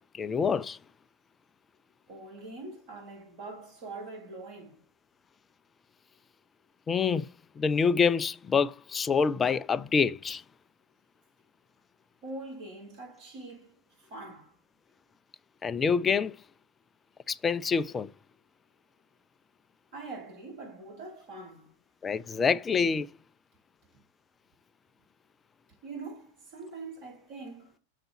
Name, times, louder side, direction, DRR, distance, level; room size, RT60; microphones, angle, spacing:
voice 1, 0.1-0.8 6.9-7.3 7.6-10.4 15.6-16.4 17.3-18.1 22.0-23.1, left 5 dB, 20° left, 0.4 m, -26 dB
voice 2, 2.1-4.8 12.2-14.6 19.9-21.8 25.8-27.8, right 3 dB, 50° right, 5.2 m, -43 dB
6.6 x 4.1 x 5.8 m
figure-of-eight pair, 90°, 0 cm